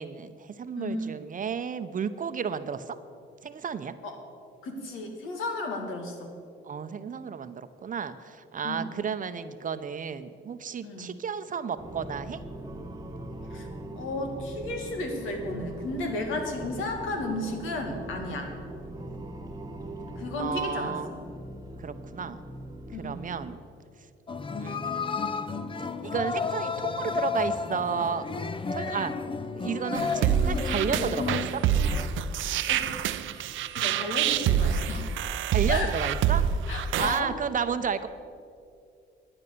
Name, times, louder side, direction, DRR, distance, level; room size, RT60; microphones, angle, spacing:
voice 1, 0.0-3.0 3.4-4.0 6.6-12.4 20.4-21.1 21.8-22.4 23.0-23.6 24.6-24.9 26.0-28.2 28.7-29.2 29.5-31.6 35.5-36.4 37.0-38.1, right 6 dB, 40° right, 11 dB, 0.7 m, -32 dB
voice 2, 0.8-1.1 4.0-4.2 4.6-6.3 8.6-9.0 10.8-11.1 13.5-13.7 14.0-18.5 20.2-21.2 22.9-23.2 32.7-33.0 33.3-33.5 33.7-35.1 35.7-35.9 36.7-37.3, left 2 dB, 90° left, 3 dB, 2.1 m, -33 dB
sound 1, 11.8-23.6, right 1 dB, 20° right, 1.3 m, -41 dB
sound 2, 24.3-32.1, left 5 dB, 25° left, 0.6 m, -32 dB
sound 3, 29.9-37.2, right 9 dB, 75° right, 0.6 m, -26 dB
10.5 x 9.7 x 6.8 m, 2.3 s
cardioid pair, 90°, 20 cm